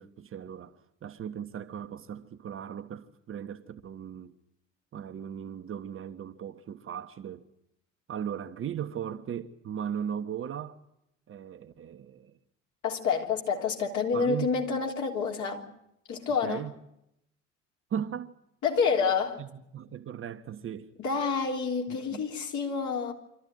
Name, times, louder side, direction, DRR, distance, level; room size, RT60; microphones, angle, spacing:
voice 1, 0.0-4.3 4.9-7.4 8.1-10.8 11.3-12.4 14.1-14.6 16.4-16.8 17.9-18.3 19.4-20.9 21.9-22.2, right 8 dB, 35° right, 1.3 m, -37 dB
voice 2, 12.8-15.7 16.1-16.6 18.6-19.4 21.0-23.1, left 5 dB, 50° left, 3.4 m, -28 dB
25.5 x 14.0 x 9.4 m
figure-of-eight pair, 65°, 38 cm